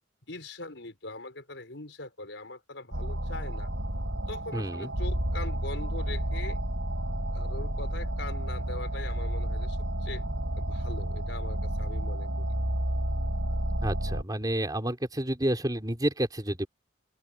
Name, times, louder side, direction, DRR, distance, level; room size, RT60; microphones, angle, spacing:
voice 1, 0.3-3.7 4.3-6.6 7.3-10.2 10.6-12.6, left 2 dB, 70° left, 5.5 m, -42 dB
sound 1, 2.9-14.2, right 1 dB, 85° right, 4.8 m, -31 dB
voice 2, 4.5-4.9 13.8-16.7, right 1 dB, 20° right, 3.4 m, -30 dB
open air
head